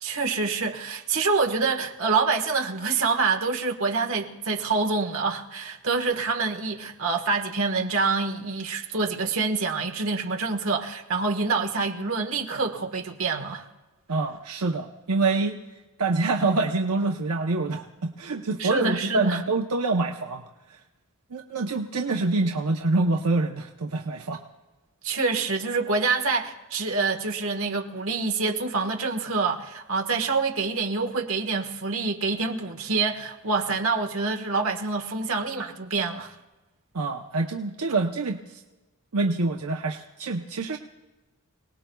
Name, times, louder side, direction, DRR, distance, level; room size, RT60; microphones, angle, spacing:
voice 1, 0.0-13.7 18.6-19.4 25.0-36.3, right 4 dB, 60° right, 4 dB, 1.4 m, -26 dB
voice 2, 14.1-15.6 16.0-20.4 20.7-20.8 21.3-24.4 36.9-38.6 39.1-40.8, right 3 dB, 85° right, 2 dB, 0.8 m, -26 dB
26.5 x 19.0 x 2.3 m, 1.2 s
head